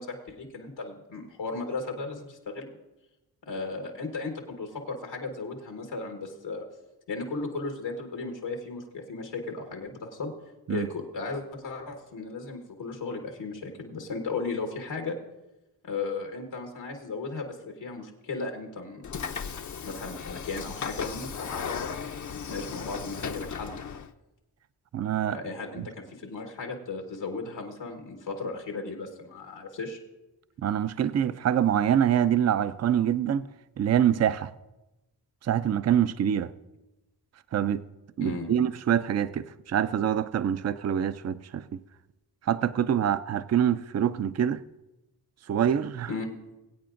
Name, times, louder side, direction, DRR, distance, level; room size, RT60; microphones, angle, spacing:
voice 1, 0.0-2.7 3.5-6.6 7.1-10.3 10.7-15.2 15.8-19.2 19.8-22.1 22.5-23.8 25.3-25.8 26.1-30.0 38.2-38.5 46.1-46.3, left 3 dB, 85° left, 1.5 m, -35 dB
Train / Sliding door, 19.0-24.1, left 6 dB, 45° left, 0.6 m, -36 dB
voice 2, 24.9-25.4 25.8-25.9 30.6-33.5 33.8-34.5 35.4-36.5 37.5-37.8 38.2-41.8 42.5-44.6 45.5-46.1, right 9 dB, 40° right, 0.5 m, -25 dB
22.0 x 8.3 x 2.6 m
cardioid pair, 50°, 42 cm